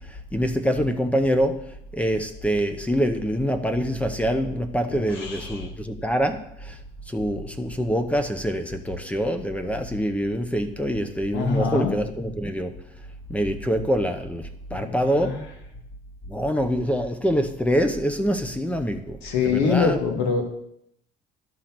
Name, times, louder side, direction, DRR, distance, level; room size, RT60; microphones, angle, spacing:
voice 1, 0.0-1.6 1.9-6.8 7.1-12.7 13.3-15.4 16.3-19.2 19.4-20.0, equal, 5° left, 8 dB, 0.7 m, -25 dB
voice 2, 4.9-5.7 11.3-11.9 14.7-15.4 19.2-20.4, left 5 dB, 75° left, 4 dB, 1.7 m, -25 dB
11.5 x 3.9 x 5.9 m, 0.75 s
cardioid pair, 130°, 18 cm